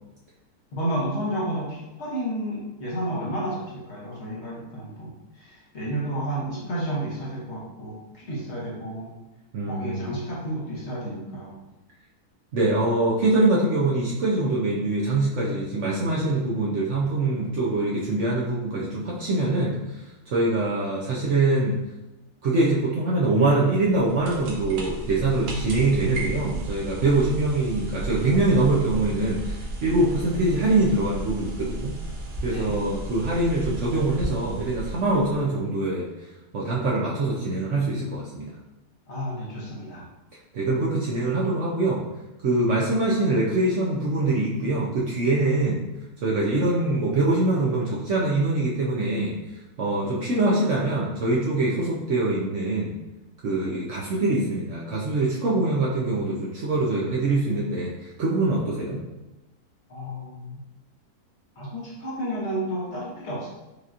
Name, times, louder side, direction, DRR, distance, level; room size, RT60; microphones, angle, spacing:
voice 1, 0.7-9.1 9.7-11.5 32.5-32.8 39.1-40.0 59.9-60.6 61.6-63.5, right 1 dB, 50° left, -6 dB, 1.2 m, -31 dB
voice 2, 9.5-10.1 12.5-21.7 22.4-31.9 32.4-36.1 36.5-38.5 40.5-42.0 42.4-45.8 46.2-49.3 49.8-52.9 53.4-59.0, right 2 dB, 65° right, -5 dB, 0.8 m, -24 dB
sound 1, 23.9-35.6, right 2 dB, 85° right, 1.3 m, -34 dB
4.9 x 2.8 x 2.4 m, 1.0 s
omnidirectional pair, 1.6 m